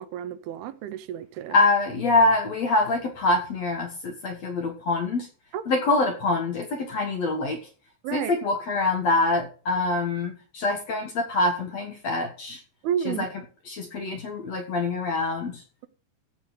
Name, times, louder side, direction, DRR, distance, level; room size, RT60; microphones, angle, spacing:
voice 1, 0.0-1.5 5.5-5.6 8.0-8.3 12.8-13.3, right 9 dB, 75° right, 2.5 m, -30 dB
voice 2, 1.5-5.3 5.7-7.6 8.1-12.6 13.0-15.6, left 2 dB, 55° left, 2.0 m, -25 dB
15.0 x 5.4 x 6.5 m
omnidirectional pair, 4.8 m